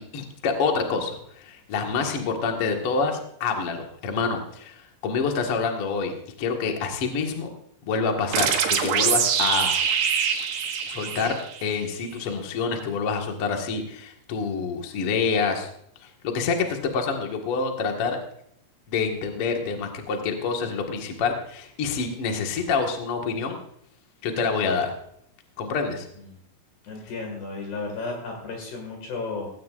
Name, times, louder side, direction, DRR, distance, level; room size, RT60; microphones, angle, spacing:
voice 1, 0.0-6.1 6.4-7.5 7.8-9.7 10.9-15.7 16.0-18.2 18.9-23.6 24.2-24.9 25.6-26.1, left 5 dB, 80° left, 2 dB, 1.2 m, -27 dB
sound 1, 8.3-11.8, right 7 dB, 65° right, 3.3 m, -24 dB
voice 2, 26.8-29.5, left 3 dB, 60° left, 2 dB, 3.9 m, -33 dB
17.0 x 16.5 x 2.5 m, 0.72 s
omnidirectional pair, 5.7 m